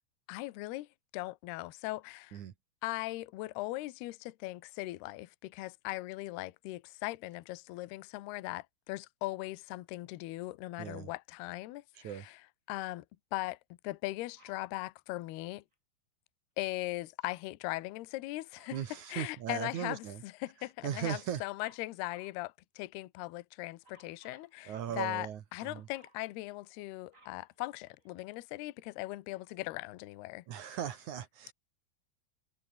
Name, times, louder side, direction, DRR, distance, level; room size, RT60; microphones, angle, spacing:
voice 1, 0.3-0.9 1.1-2.4 2.8-12.4 12.7-13.1 13.3-13.6 13.8-15.6 16.6-18.8 19.1-30.4, left 19 dB, 75° left, 2.4 m, -39 dB
voice 2, 10.8-11.1 12.0-12.3 18.7-20.2 20.8-21.4 24.7-25.9 30.5-31.5, right 9 dB, 70° right, 1.8 m, -38 dB
Dog, 14.4-14.7 18.5-19.4 21.6-22.4 23.8-24.5 25.6-26.2 26.8-28.3 29.0-29.1, right 2 dB, 15° right, 5.5 m, -63 dB
omnidirectional pair, 6.0 m